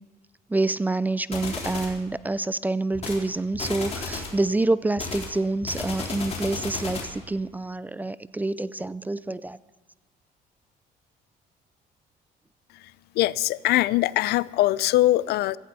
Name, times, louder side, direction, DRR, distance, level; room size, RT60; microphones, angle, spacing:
voice 1, 0.5-9.6, right 2 dB, 10° right, 0.3 m, -27 dB
sound 1, 1.3-2.0 2.9-3.2 3.5-4.4 5.0-7.2, left 4 dB, 40° left, 3.9 m, -33 dB
voice 2, 13.2-15.6, left 16 dB, 75° left, 0.4 m, -22 dB
16.5 x 14.5 x 4.1 m
cardioid pair, 110°, 17 cm